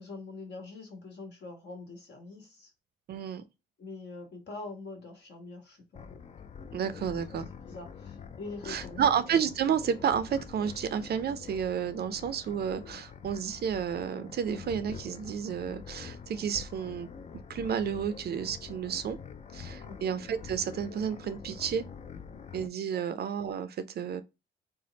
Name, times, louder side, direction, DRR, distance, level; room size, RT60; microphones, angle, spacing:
voice 1, 0.0-2.7 3.8-6.2 7.7-9.1 19.8-20.0 22.9-23.0, left 3 dB, 60° left, 1.4 m, -44 dB
voice 2, 3.1-3.4 6.7-7.5 8.7-17.1 17.5-19.2 19.5-21.8 22.5-24.2, right 8 dB, 55° right, 0.5 m, -31 dB
sound 1, 6.0-22.7, left 6 dB, 35° left, 0.4 m, -45 dB
3.3 x 2.1 x 3.9 m
cardioid pair, 90°, 20 cm